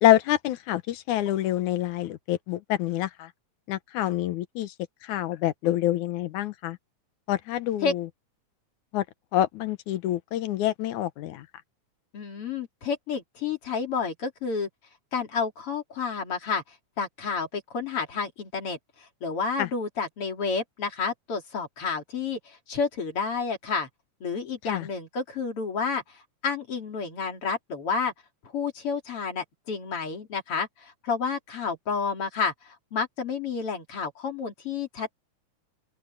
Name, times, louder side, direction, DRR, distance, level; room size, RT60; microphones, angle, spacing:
voice 1, 0.0-3.3 3.7-4.7 5.0-6.8 7.3-8.1 8.9-9.1 9.3-11.5 19.6-19.7 24.6-24.9, left 13 dB, 85° left, 2.4 m, -26 dB
voice 2, 12.1-14.7 15.1-16.6 17.0-18.8 19.2-23.9 24.2-26.0 26.4-28.1 28.4-32.5 32.9-35.2, left 5 dB, 50° left, 3.5 m, -30 dB
omnidirectional pair, 3.4 m